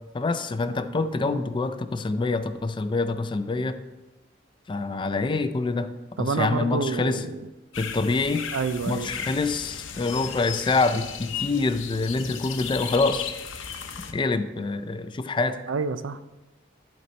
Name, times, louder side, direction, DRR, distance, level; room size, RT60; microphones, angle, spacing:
voice 1, 0.1-3.8 4.7-5.9 6.2-7.2 7.8-8.5 8.9-13.3 14.1-15.6, left 3 dB, 25° left, 11 dB, 0.4 m, -26 dB
voice 2, 0.9-1.5 6.2-7.5 8.5-9.1 15.7-16.2, right 4 dB, 75° right, 13 dB, 0.4 m, -29 dB
sound 1, 7.7-14.1, left 7 dB, 80° left, 0.7 m, -35 dB
11.0 x 4.2 x 4.3 m, 1.1 s
head